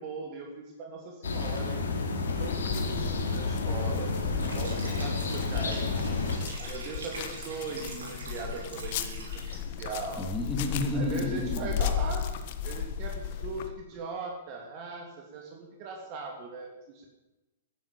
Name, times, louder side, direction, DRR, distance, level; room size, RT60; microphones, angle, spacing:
voice 1, 0.0-4.2 4.5-6.2 6.6-9.3 9.8-10.3 10.9-12.3 12.6-17.1, right 3 dB, 40° right, 0 dB, 3.0 m, -39 dB
sound 1, 1.2-6.4, left 3 dB, 75° left, 3.1 m, -30 dB
sound 2, 2.4-13.7, left 8 dB, 50° left, 1.4 m, -36 dB
Liquid, 4.4-9.8, right 3 dB, 75° right, 5.5 m, -45 dB
voice 2, 10.2-11.7, left 2 dB, 10° left, 3 dB, 2.7 m, -30 dB
13.0 x 10.0 x 8.7 m, 1.0 s
hypercardioid pair, 115°, 0 cm